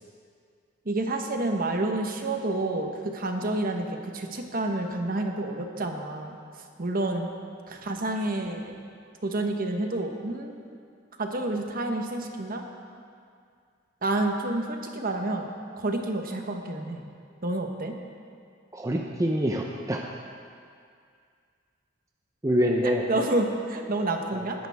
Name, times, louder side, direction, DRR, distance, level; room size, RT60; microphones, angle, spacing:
voice 1, 0.8-6.4 6.8-7.3 7.7-8.7 9.2-10.6 11.2-12.6 14.0-15.5 15.8-17.1 17.4-18.0 22.8-24.7, right 2 dB, 45° right, 3 dB, 1.2 m, -29 dB
voice 2, 18.7-20.1 22.4-23.1 24.3-24.5, equal, 15° right, 0 dB, 0.7 m, -26 dB
19.5 x 10.5 x 3.6 m, 2.2 s
head